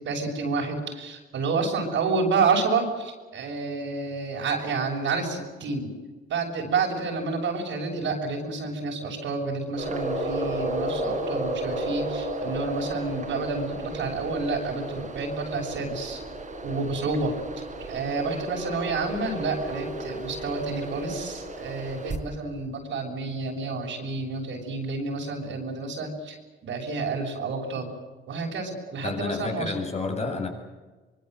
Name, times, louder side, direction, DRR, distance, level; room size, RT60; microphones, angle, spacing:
voice 1, 0.0-5.9 6.3-16.2 16.6-17.4 17.9-26.4 26.6-27.9 28.3-29.7, right 4 dB, 70° right, 0 dB, 6.6 m, -29 dB
sound 1, 9.7-22.2, right 1 dB, 40° right, 5.2 m, -33 dB
voice 2, 29.0-30.5, left 3 dB, 35° left, 3 dB, 7.9 m, -30 dB
24.5 x 23.5 x 7.9 m, 1.3 s
cardioid pair, 90°, 20 cm